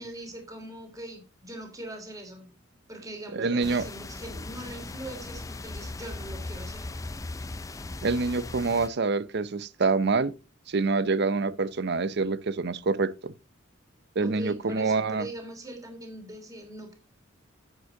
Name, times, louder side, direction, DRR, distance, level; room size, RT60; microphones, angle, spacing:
voice 1, 0.0-2.5 2.9-6.9 14.2-16.9, right 1 dB, 15° right, 3.0 m, -41 dB
voice 2, 3.3-3.9 8.0-10.3 10.7-13.3 14.2-15.3, right 4 dB, 55° right, 0.6 m, -26 dB
sound 1, 3.6-8.9, left 2 dB, 15° left, 0.4 m, -38 dB
9.9 x 8.0 x 3.8 m
head